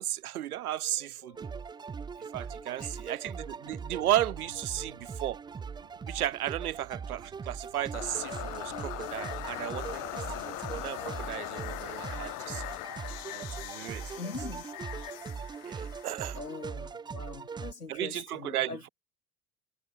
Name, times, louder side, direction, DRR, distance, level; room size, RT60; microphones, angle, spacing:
voice 1, 0.0-1.5 2.2-5.4 6.0-12.6 13.3-14.1 15.6-16.4 17.9-18.9, right 13 dB, 75° right, 0.6 m, -34 dB
voice 2, 0.9-1.9 2.5-3.1 4.7-5.0 14.2-14.7 16.4-18.9, left 4 dB, 85° left, 2.2 m, -44 dB
sound 1, 1.3-17.7, right 5 dB, 10° right, 0.5 m, -40 dB
Thunder, 3.0-13.6, right 13 dB, 40° right, 6.6 m, -58 dB
sound 2, 7.9-16.9, left 22 dB, 45° left, 1.7 m, -41 dB
figure-of-eight pair, 70°, 45 cm